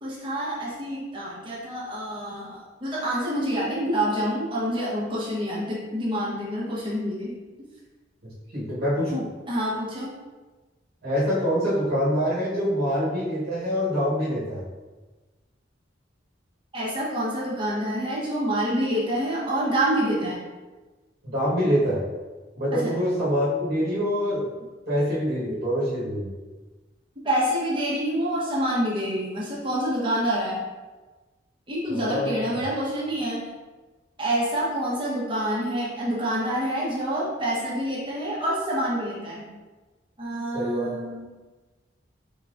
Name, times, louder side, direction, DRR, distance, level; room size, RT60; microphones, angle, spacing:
voice 1, 0.0-7.3 9.5-10.1 16.7-20.4 22.8-22.9 27.2-30.6 31.7-33.5 34.2-39.4 40.2-41.3, right 1 dB, 25° right, -6 dB, 1.1 m, -27 dB
voice 2, 8.2-9.3 11.0-14.6 21.2-22.0 22.6-24.5 24.9-26.3 31.9-32.4 40.5-40.9, equal, 55° right, -9 dB, 1.3 m, -25 dB
3.9 x 3.7 x 2.5 m, 1.3 s
head